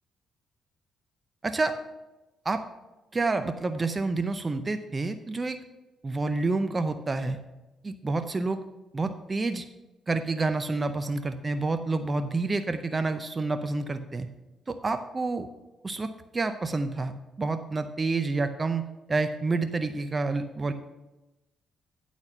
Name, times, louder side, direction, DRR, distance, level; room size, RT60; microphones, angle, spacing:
voice 1, 1.4-1.7 2.5-2.6 3.1-5.6 6.0-7.4 7.8-8.6 8.9-9.6 10.1-14.3 14.7-15.5 15.8-17.1 17.4-20.7, right 3 dB, 25° right, 9 dB, 0.5 m, -28 dB
10.5 x 4.1 x 5.9 m, 1.0 s
cardioid pair, 90°, 0 cm